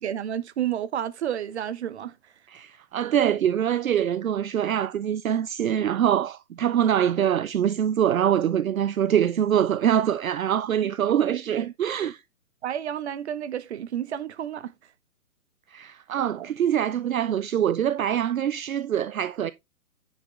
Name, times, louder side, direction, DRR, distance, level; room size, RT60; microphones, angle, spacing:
voice 1, 0.0-2.2 10.8-10.9 12.6-14.7 16.2-16.5, right 10 dB, 50° right, 1.0 m, -31 dB
voice 2, 2.5-12.2 15.7-19.5, right 10 dB, 65° right, 0.6 m, -24 dB
10.0 x 6.3 x 3.2 m
figure-of-eight pair, 130°, 44 cm